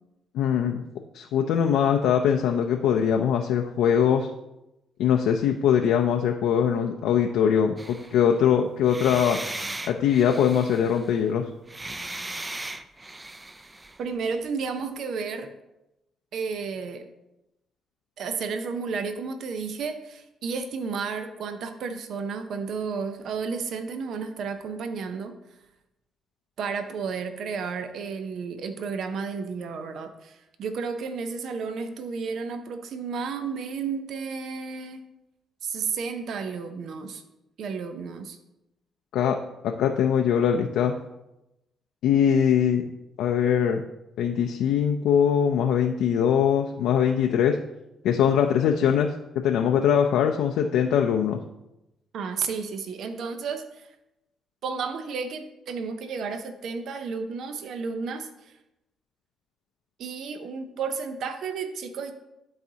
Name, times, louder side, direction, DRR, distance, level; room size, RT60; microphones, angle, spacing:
voice 1, 0.3-0.8 1.1-4.3 5.0-9.4 9.9-11.5 39.1-39.4 39.6-40.9 42.0-42.8 43.2-43.8 44.2-47.6 48.0-51.4, left 8 dB, 85° left, 3 dB, 0.4 m, -22 dB
sound 1, 7.8-8.4 8.8-11.2 11.7-14.0, right 2 dB, 20° right, 0.4 m, -37 dB
voice 2, 14.0-15.5 16.3-17.1 18.2-25.4 26.6-35.0 35.6-37.2 37.6-38.4 52.1-53.9 54.6-58.5 60.0-62.1, right 5 dB, 70° right, 8 dB, 0.6 m, -32 dB
12.0 x 4.0 x 2.8 m, 0.91 s
cardioid pair, 90°, 0 cm